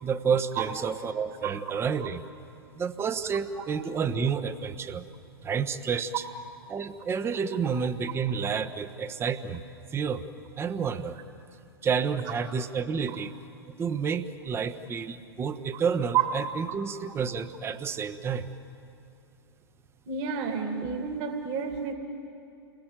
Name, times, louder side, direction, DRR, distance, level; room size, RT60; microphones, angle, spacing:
voice 1, 0.0-2.2 2.7-5.1 5.4-6.2 6.7-9.6 9.9-10.2 10.6-11.2 11.8-13.3 13.6-18.5, right 6 dB, 20° right, 11 dB, 1.1 m, -30 dB
voice 2, 20.1-21.9, right 8 dB, 40° right, 4 dB, 2.5 m, -29 dB
30.0 x 21.0 x 9.0 m, 2.8 s
figure-of-eight pair, 105°, 13 cm